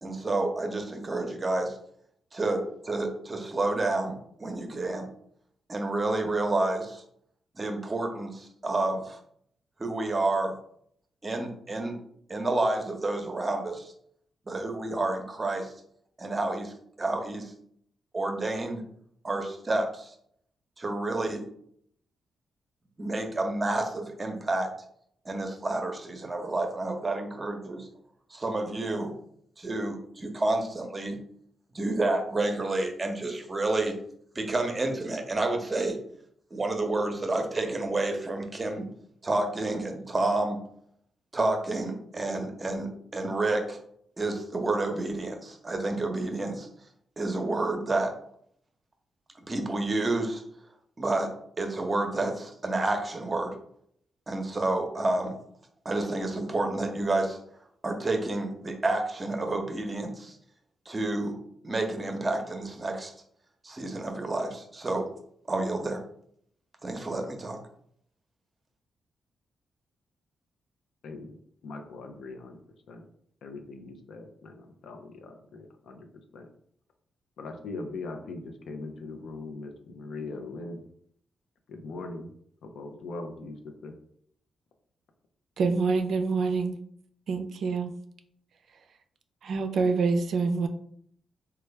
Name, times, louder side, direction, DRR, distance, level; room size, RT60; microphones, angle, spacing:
voice 1, 0.0-1.8 2.3-5.1 5.7-7.0 7.6-9.2 9.8-10.5 11.2-12.0 12.3-13.9 14.5-15.7 16.2-17.5 18.1-18.8 19.2-20.1 20.8-21.4 23.0-24.7 25.3-27.9 28.3-29.1 29.6-31.2 31.7-34.0 34.3-36.0 36.5-38.9 39.2-40.6 41.3-43.8 44.2-46.7 47.2-48.2 49.5-50.4 51.0-51.3 51.6-53.5 54.3-55.4 55.8-57.4 57.8-60.4 60.9-61.4 61.6-63.1 63.6-65.1 65.5-66.0 66.8-67.6, right 2 dB, 30° right, 4 dB, 0.7 m, -29 dB
voice 2, 71.6-72.5 72.9-73.0 73.4-74.5 74.8-76.0 76.3-76.5 77.4-78.4 78.7-80.8 81.7-82.3 82.6-83.5 83.8-83.9, left 3 dB, 75° left, 5 dB, 0.5 m, -40 dB
voice 3, 85.6-86.7 87.3-87.9 89.4-90.7, right 4 dB, 70° right, 7 dB, 0.4 m, -26 dB
3.2 x 2.3 x 3.2 m, 0.66 s
cardioid pair, 60°, 0 cm